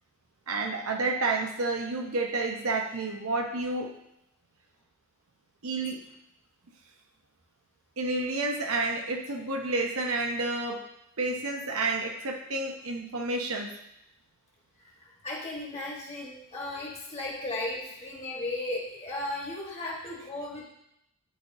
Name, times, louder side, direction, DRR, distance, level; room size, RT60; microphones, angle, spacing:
voice 1, 0.5-3.9 5.6-6.0 8.0-10.8 11.2-13.7, right 3 dB, 75° right, 3 dB, 0.8 m, -30 dB
voice 2, 14.8-20.6, left 2 dB, 30° left, -3 dB, 1.4 m, -36 dB
11.0 x 3.9 x 2.7 m, 0.81 s
head